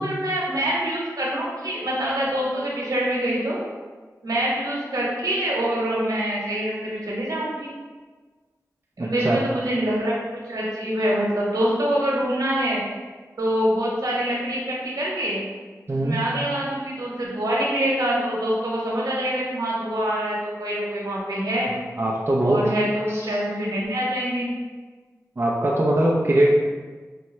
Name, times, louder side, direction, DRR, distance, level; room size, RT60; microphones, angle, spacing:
voice 1, 0.0-3.6 4.2-7.7 9.0-10.1 10.5-12.8 13.4-15.4 15.9-21.7 22.4-24.5, right 1 dB, 75° right, -5 dB, 1.2 m, -25 dB
voice 2, 9.0-9.4 15.9-16.2 22.0-22.6 23.1-23.3 25.4-26.5, right 1 dB, 40° right, -4 dB, 0.5 m, -21 dB
5.4 x 2.3 x 3.1 m, 1.4 s
cardioid pair, 45°, 6 cm